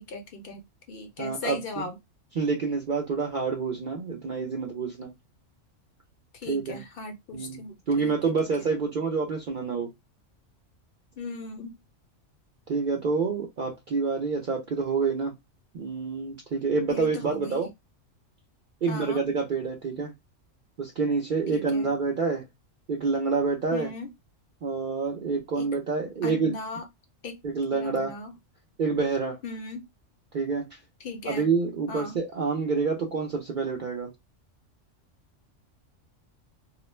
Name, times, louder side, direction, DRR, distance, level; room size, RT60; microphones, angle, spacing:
voice 1, 0.0-2.0 6.3-8.1 8.6-8.7 11.2-11.7 16.9-17.6 18.9-19.2 21.5-21.9 23.7-24.1 25.6-25.7 26.2-26.8 27.2-27.4 27.7-28.3 29.4-29.8 31.0-31.5 31.9-32.2, left 3 dB, 60° left, 0.6 m, -38 dB
voice 2, 1.2-1.6 2.4-5.1 6.5-6.8 7.3-7.6 7.9-9.9 12.7-15.3 15.7-17.7 18.8-20.1 20.8-22.4 22.9-23.9 24.6-26.5 27.4-28.1 28.8-29.4 30.3-30.8 31.2-34.1, right 4 dB, 55° right, 0.6 m, -27 dB
2.4 x 2.0 x 3.0 m
omnidirectional pair, 1.3 m